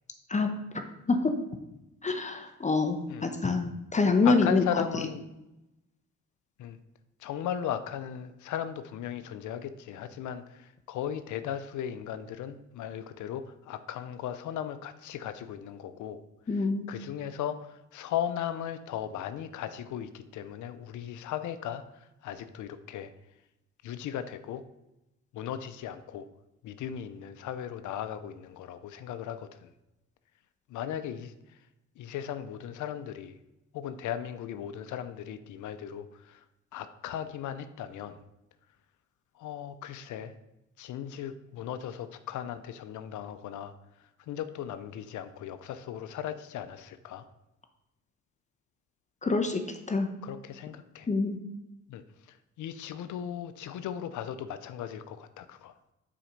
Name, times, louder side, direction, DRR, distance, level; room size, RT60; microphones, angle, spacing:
voice 1, 0.3-0.8 1.1-1.3 2.0-4.8 16.5-16.8 49.2-50.1 51.1-51.4, left 3 dB, 25° left, 6 dB, 0.8 m, -26 dB
voice 2, 4.2-5.2 6.6-6.8 7.2-16.2 16.5-23.1 23.8-24.6 25.3-26.3 26.6-29.7 30.7-31.3 32.0-33.3 33.7-36.4 36.7-38.2 39.4-40.3 40.8-43.7 44.3-47.2 50.2-51.1 51.9-55.7, left 9 dB, 75° left, 11 dB, 0.6 m, -37 dB
7.5 x 4.3 x 5.2 m, 0.93 s
cardioid pair, 90°, 30 cm